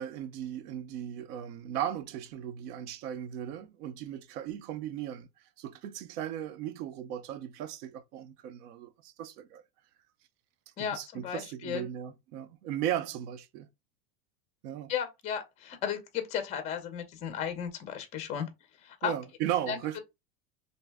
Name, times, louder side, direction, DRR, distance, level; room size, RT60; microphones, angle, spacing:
voice 1, 0.0-5.3 5.6-9.6 10.9-13.7 14.6-14.9 19.0-20.0, right 10 dB, 75° right, 0.6 m, -36 dB
voice 2, 10.8-11.8 14.9-18.5 18.8-19.1 19.7-19.8, left 8 dB, 15° left, 0.4 m, -34 dB
2.6 x 2.1 x 3.3 m
supercardioid pair, 120°, 48 cm